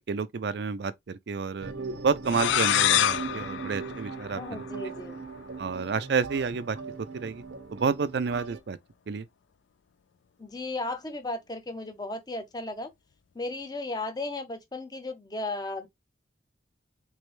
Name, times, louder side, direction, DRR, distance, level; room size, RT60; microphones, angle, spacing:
voice 1, 0.1-1.7 2.0-4.6 5.6-6.8 7.1-7.4 7.7-8.8 9.1-9.3, right 5 dB, 65° right, 0.4 m, -29 dB
sound 1, 1.6-8.6, right 4 dB, 85° right, 0.7 m, -40 dB
sound 2, 2.3-4.9, left 11 dB, 80° left, 0.3 m, -26 dB
voice 2, 4.4-5.2 10.4-12.9 13.3-15.9, left 2 dB, 20° left, 0.6 m, -35 dB
3.4 x 3.2 x 3.1 m
head